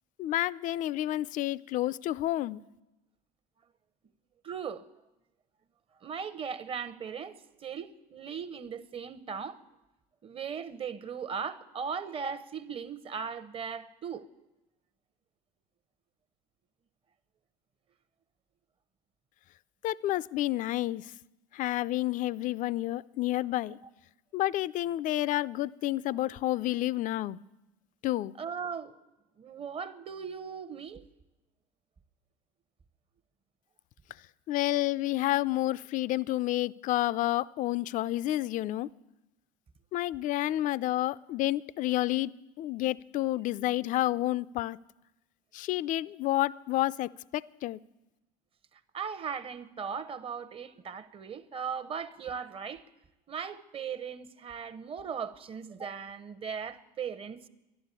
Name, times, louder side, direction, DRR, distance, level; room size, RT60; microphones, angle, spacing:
voice 1, 0.2-2.6 19.8-21.0 21.5-23.8 24.3-27.4 28.0-28.3 34.5-38.9 39.9-42.3 42.6-44.8 45.5-47.8, left 15 dB, 45° left, 0.4 m, -30 dB
voice 2, 4.4-4.8 6.0-9.6 10.2-14.3 28.4-28.9 29.4-31.0 48.9-52.8 53.3-57.5, right 6 dB, 30° right, 0.9 m, -38 dB
11.5 x 11.5 x 8.2 m
supercardioid pair, 105°, 18 cm